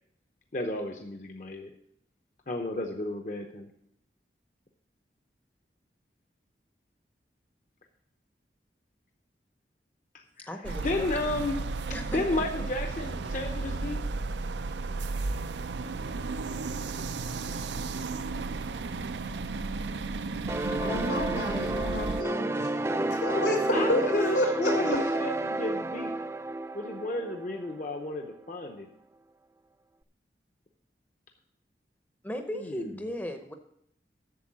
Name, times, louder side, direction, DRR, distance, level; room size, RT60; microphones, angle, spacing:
voice 1, 0.5-1.7 2.5-3.7 10.1-10.5 10.8-11.7 12.1-14.0 23.7-26.2 26.7-28.9 32.5-32.9, left 2 dB, 45° left, 4 dB, 0.8 m, -32 dB
voice 2, 10.5-11.1 11.9-12.2 32.2-33.5, equal, 10° left, 5 dB, 0.7 m, -36 dB
sound 1, 10.6-22.2, right 3 dB, 85° right, 0.5 m, -34 dB
voice 3, 20.3-24.1 24.3-25.0, left 1 dB, 90° left, -1 dB, 3.6 m, -30 dB
sound 2, 20.5-28.0, right 2 dB, 15° right, 0.3 m, -31 dB
8.5 x 7.0 x 7.3 m, 0.73 s
head